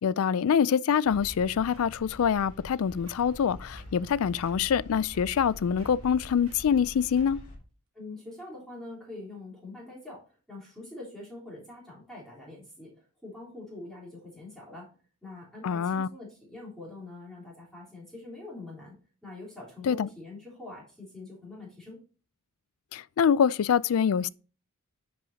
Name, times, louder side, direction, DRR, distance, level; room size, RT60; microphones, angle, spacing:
voice 1, 0.0-7.4 15.6-16.1 19.8-20.1 22.9-24.3, left 7 dB, 75° left, 0.4 m, -25 dB
sound 1, 1.0-7.6, left 1 dB, 35° left, 2.4 m, -46 dB
sound 2, 1.7-2.0 2.4-2.7 3.0-3.2 3.8-4.1 4.4-4.7 5.1-5.5 5.8-6.1 6.5-6.6 7.2-7.5 8.1-8.2, right 4 dB, 70° right, 1.5 m, -56 dB
voice 2, 7.9-14.9 15.2-18.9 19.2-22.0, left 2 dB, ahead, 3.6 m, -44 dB
10.5 x 5.5 x 2.8 m
head